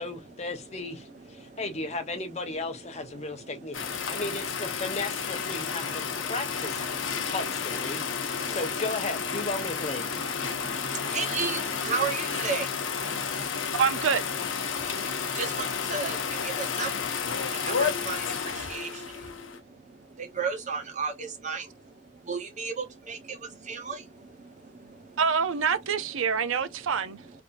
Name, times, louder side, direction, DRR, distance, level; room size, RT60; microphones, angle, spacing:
voice 1, 0.0-10.1, left 2 dB, 35° left, 0.8 m, -35 dB
voice 2, 1.0-2.2 2.5-4.3 5.0-7.3 7.9-8.6 9.1-13.7 14.7-25.2 26.6-27.0 27.3-27.4, right 5 dB, 35° right, 0.9 m, -37 dB
sound 1, 3.7-19.6, left 6 dB, 75° left, 0.8 m, -31 dB
voice 3, 13.8-14.3 25.2-27.2, right 6 dB, 80° right, 0.5 m, -26 dB
3.4 x 2.6 x 2.5 m
head